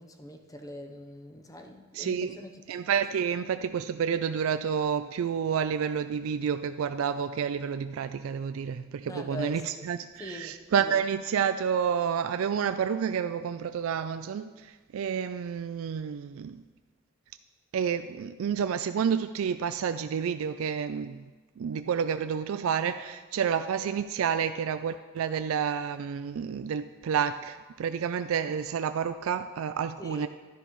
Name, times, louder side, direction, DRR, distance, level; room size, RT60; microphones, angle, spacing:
voice 1, 0.0-2.5 9.0-9.9 10.2-11.0 30.0-30.3, left 1 dB, 15° left, 4 dB, 0.8 m, -42 dB
voice 2, 1.9-2.3 2.7-16.6 17.7-21.3 21.6-30.3, right 7 dB, 80° right, 11 dB, 0.3 m, -29 dB
12.0 x 10.5 x 3.1 m, 1.3 s
head